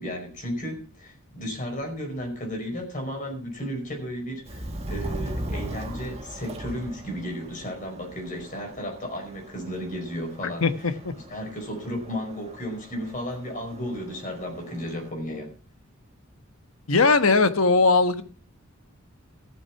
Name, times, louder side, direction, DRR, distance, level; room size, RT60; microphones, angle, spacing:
voice 1, 0.0-15.5, equal, 40° left, 2 dB, 5.1 m, -34 dB
Subway metro underground, 4.5-15.1, right 1 dB, 30° right, 1.7 m, -39 dB
voice 2, 10.6-11.1 16.9-18.2, left 3 dB, 80° left, 10 dB, 1.2 m, -19 dB
14.5 x 7.7 x 5.8 m, 0.39 s
head